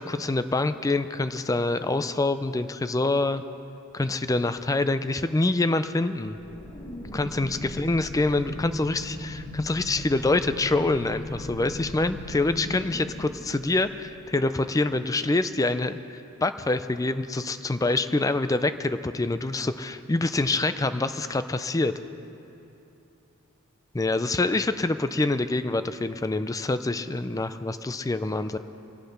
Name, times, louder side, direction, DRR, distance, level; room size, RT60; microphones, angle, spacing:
voice 1, 0.0-3.4 3.9-6.4 7.1-21.9 23.9-28.6, left 2 dB, 15° left, 11 dB, 0.4 m, -26 dB
sound 1, 6.3-14.5, left 1 dB, 40° left, 1.7 m, -38 dB
23.5 x 8.3 x 5.9 m, 2.9 s
head